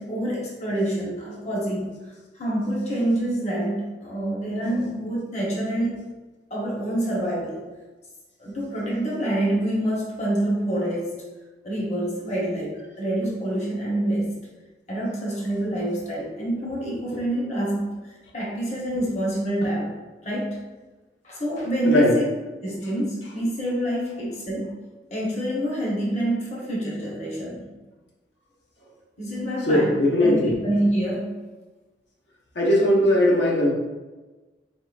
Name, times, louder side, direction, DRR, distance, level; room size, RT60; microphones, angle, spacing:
voice 1, 0.0-1.9 2.3-6.0 6.5-7.7 8.4-11.2 11.6-14.3 14.9-17.9 18.3-19.9 20.2-20.6 21.2-22.2 22.6-24.7 25.1-27.7 29.2-29.9 30.2-31.3, right 1 dB, 40° left, -4 dB, 0.9 m, -26 dB
voice 2, 21.8-22.2 29.7-30.6 32.5-33.7, left 1 dB, 75° left, -3 dB, 0.9 m, -19 dB
4.2 x 3.6 x 2.4 m, 1.2 s
head